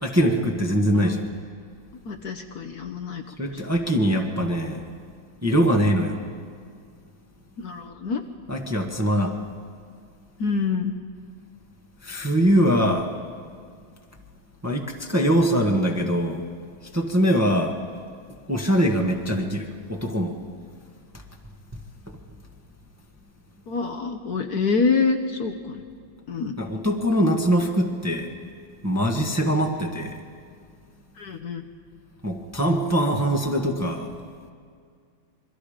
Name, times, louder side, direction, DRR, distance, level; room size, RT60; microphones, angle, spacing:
voice 1, 0.0-1.2 3.4-4.8 5.4-6.2 8.5-9.4 12.0-13.1 14.6-16.4 16.9-17.8 18.5-20.4 26.6-28.3 28.8-30.2 32.2-34.1, equal, 10° right, 2 dB, 1.2 m, -22 dB
voice 2, 2.0-3.2 7.6-8.2 10.4-10.9 23.7-25.8 26.3-26.5 31.2-31.6, left 4 dB, 60° left, 5 dB, 1.3 m, -26 dB
26.5 x 23.0 x 5.1 m, 2.1 s
omnidirectional pair, 2.1 m